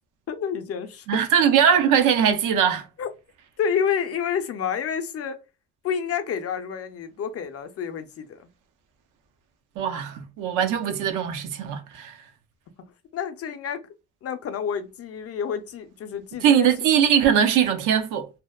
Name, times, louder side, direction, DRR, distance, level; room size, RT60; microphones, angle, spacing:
voice 1, 0.3-1.2 3.0-3.1 3.6-5.4 5.8-8.5 13.1-13.8 14.2-16.7, left 7 dB, 50° left, 0.5 m, -29 dB
voice 2, 1.1-2.9 9.8-12.2 16.4-18.3, right 8 dB, 85° right, 0.5 m, -21 dB
2.7 x 2.0 x 2.2 m
cardioid pair, 90°, 30 cm